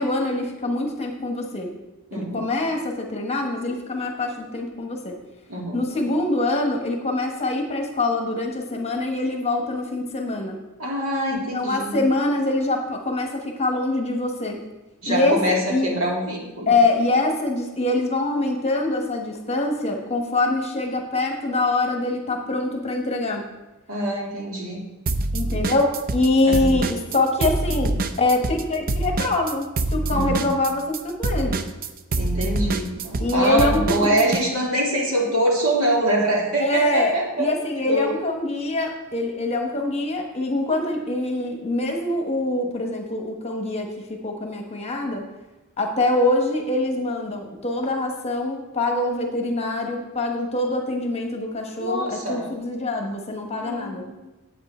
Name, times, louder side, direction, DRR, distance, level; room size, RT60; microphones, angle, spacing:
voice 1, 0.0-1.7 2.1-5.2 5.7-10.6 11.3-14.6 15.0-15.4 15.7-15.9 16.7-23.4 25.3-31.6 33.2-34.2 36.6-45.2 45.8-54.1, left 2 dB, 30° left, 2 dB, 1.2 m, -24 dB
voice 2, 2.1-2.4 5.5-5.8 10.8-12.0 15.0-16.7 23.9-24.9 26.4-26.7 30.1-30.4 32.2-37.5 37.9-38.1 51.8-52.5 53.6-54.2, right 1 dB, 70° right, -3 dB, 2.5 m, -24 dB
sound 1, 25.1-26.3 26.5-34.4, right 2 dB, 40° right, 0.5 m, -25 dB
8.9 x 8.2 x 4.4 m, 1.1 s
head